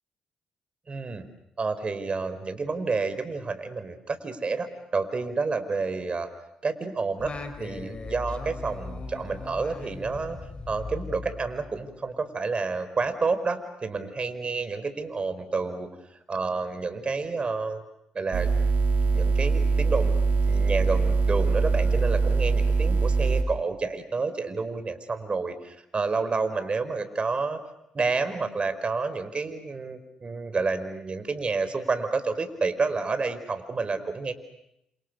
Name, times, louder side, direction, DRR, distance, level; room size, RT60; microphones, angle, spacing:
voice 1, 0.9-1.3 1.6-4.7 4.9-6.3 6.6-7.3 7.6-10.4 10.7-15.9 16.3-17.8 18.1-18.5 19.1-20.1 20.5-27.6 27.9-34.3, right 4 dB, 40° right, 10 dB, 4.9 m, -29 dB
Singing, 7.2-12.0, left 3 dB, 40° left, 4.1 m, -38 dB
sound 1, 18.3-23.4, right 4 dB, 65° right, 4.4 m, -23 dB
30.0 x 28.0 x 6.8 m, 0.82 s
hypercardioid pair, 50°, 3 cm